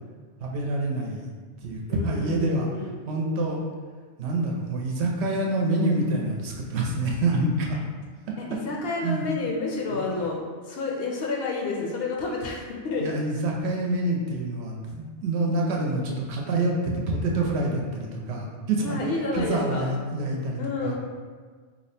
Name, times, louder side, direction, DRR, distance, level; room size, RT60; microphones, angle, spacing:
voice 1, 0.4-1.2 1.6-2.7 3.1-3.6 4.2-7.8 9.0-9.3 9.9-10.1 13.0-19.0 19.3-20.9, right 2 dB, 70° right, -1 dB, 0.9 m, -27 dB
voice 2, 1.9-3.1 8.5-10.4 10.6-13.1 18.8-19.9 20.6-20.9, left 3 dB, 65° left, -2 dB, 0.7 m, -30 dB
2.8 x 2.1 x 4.1 m, 1.5 s
omnidirectional pair, 1.2 m